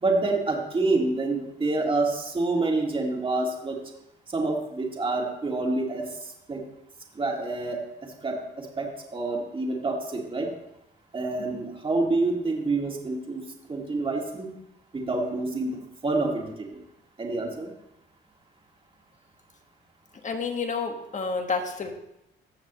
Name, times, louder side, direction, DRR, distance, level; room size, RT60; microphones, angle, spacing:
voice 1, 0.0-3.8 4.3-6.1 6.5-6.6 7.2-7.8 8.2-10.5 11.1-13.4 13.7-14.6 14.9-15.8 16.0-16.7 17.2-17.7, right 3 dB, 25° right, 0 dB, 2.1 m, -27 dB
voice 2, 20.2-21.9, left 4 dB, 40° left, 4 dB, 1.5 m, -30 dB
15.5 x 6.6 x 3.1 m, 0.86 s
cardioid pair, 90°, 20 cm